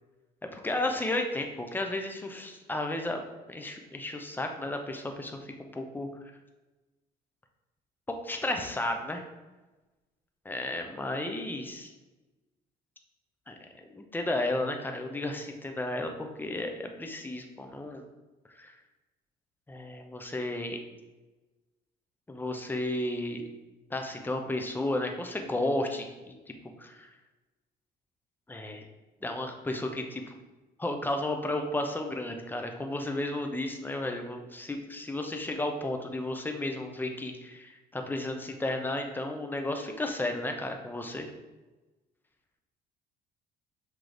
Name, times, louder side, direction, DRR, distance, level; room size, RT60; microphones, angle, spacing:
voice 1, 0.5-3.2 3.5-6.1 8.1-9.2 10.4-11.9 13.5-13.6 13.9-18.1 18.6-18.7 19.7-20.8 22.3-23.4 23.9-27.1 28.5-28.8 29.2-30.3 30.8-41.3, left 1 dB, 10° left, 4 dB, 0.8 m, -33 dB
6.3 x 3.1 x 5.1 m, 1.1 s
cardioid pair, 110°, 17 cm